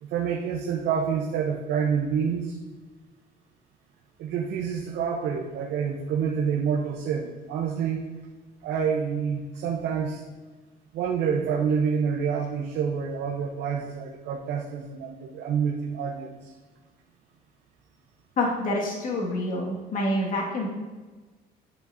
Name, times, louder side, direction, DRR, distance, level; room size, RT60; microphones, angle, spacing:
voice 1, 0.0-2.6 4.2-8.0 8.6-10.2 10.9-16.5, right 7 dB, 80° right, -1 dB, 0.8 m, -27 dB
voice 2, 18.4-20.7, left 1 dB, 55° left, -2 dB, 1.9 m, -27 dB
8.9 x 7.1 x 2.7 m, 1.3 s
cardioid pair, 110°, 17 cm